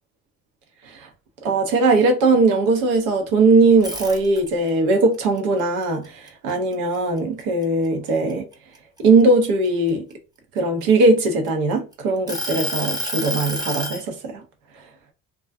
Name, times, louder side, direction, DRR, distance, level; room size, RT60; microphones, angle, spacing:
voice 1, 1.4-8.5 9.0-10.1 10.5-14.4, right 3 dB, 85° right, 0.7 m, -19 dB
sound 1, 3.7-4.7 5.1-7.0 7.4-7.6 8.1-9.9 10.6-11.7 12.3-14.0, equal, 10° right, 0.6 m, -29 dB
2.3 x 2.2 x 2.4 m
hypercardioid pair, 60°, 42 cm